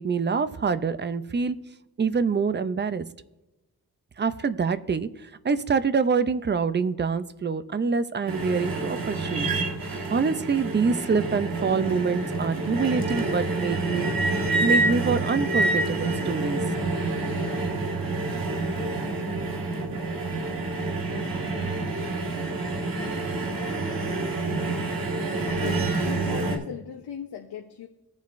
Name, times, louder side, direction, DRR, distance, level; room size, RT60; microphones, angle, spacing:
voice 1, 0.0-1.6 2.0-3.0 4.2-9.5 9.8-14.1 14.6-16.6, right 5 dB, 30° right, 13 dB, 0.4 m, -26 dB
sound 1, 8.3-26.6, right 2 dB, 60° right, 1.6 m, -27 dB
voice 2, 25.6-27.9, left 8 dB, 90° left, 3 dB, 0.8 m, -38 dB
18.5 x 7.3 x 2.5 m, 0.99 s
wide cardioid pair, 155°, 39 cm